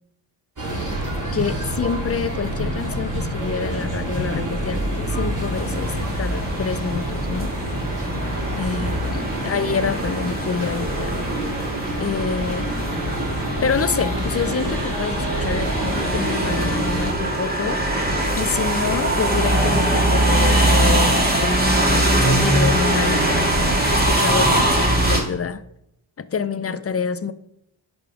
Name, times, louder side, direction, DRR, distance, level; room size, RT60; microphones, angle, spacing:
sound 1, 0.6-17.1, right 1 dB, 40° right, 3.7 m, -27 dB
voice 1, 1.3-7.5 8.6-11.2 12.0-12.7 13.6-17.8 18.3-21.6 21.9-25.6 26.2-27.3, left 5 dB, 30° left, 0.7 m, -27 dB
sound 2, 5.5-25.2, right 1 dB, 20° right, 2.8 m, -22 dB
11.0 x 5.5 x 5.0 m
cardioid pair, 55°, 49 cm